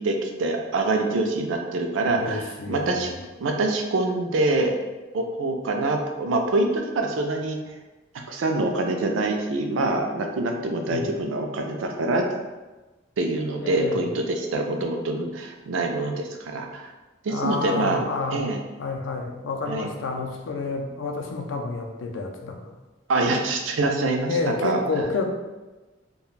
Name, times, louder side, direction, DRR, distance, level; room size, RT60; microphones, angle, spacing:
voice 1, 0.0-3.1 3.4-4.8 5.1-7.6 8.3-12.2 13.2-16.9 17.2-18.6 19.7-19.9 23.1-25.0, right 2 dB, 75° right, 3 dB, 0.4 m, -25 dB
voice 2, 2.2-3.1 10.9-11.1 13.6-14.0 17.3-18.5 18.8-22.6 24.3-25.2, left 3 dB, 70° left, 2 dB, 0.4 m, -29 dB
2.3 x 2.2 x 3.1 m, 1.2 s
head